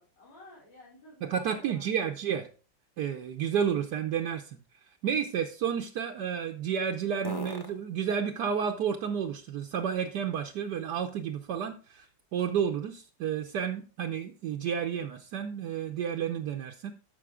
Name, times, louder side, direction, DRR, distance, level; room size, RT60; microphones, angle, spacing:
voice 1, 0.0-2.2, left 1 dB, 75° left, -7 dB, 4.6 m, -54 dB
voice 2, 1.2-2.5 3.0-4.6 5.0-16.9, right 8 dB, 70° right, 4 dB, 1.2 m, -31 dB
sound 1, 2.3-11.3 11.8-15.6, left 1 dB, 15° left, 0.9 m, -51 dB
12.5 x 5.5 x 3.6 m, 0.36 s
omnidirectional pair, 2.0 m